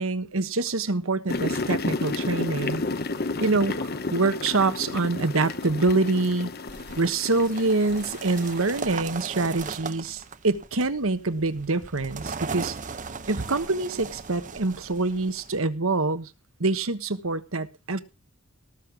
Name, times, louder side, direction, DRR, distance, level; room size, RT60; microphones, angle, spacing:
voice 1, 0.0-2.8 3.4-6.5 7.0-12.8 13.3-16.3 16.6-18.0, right 3 dB, 70° right, 11 dB, 1.3 m, -25 dB
sound 1, 1.3-8.8, left 3 dB, 45° left, 0.9 m, -32 dB
sound 2, 6.7-15.6, right 4 dB, 35° right, 0.8 m, -38 dB
18.5 x 6.7 x 6.1 m, 0.30 s
head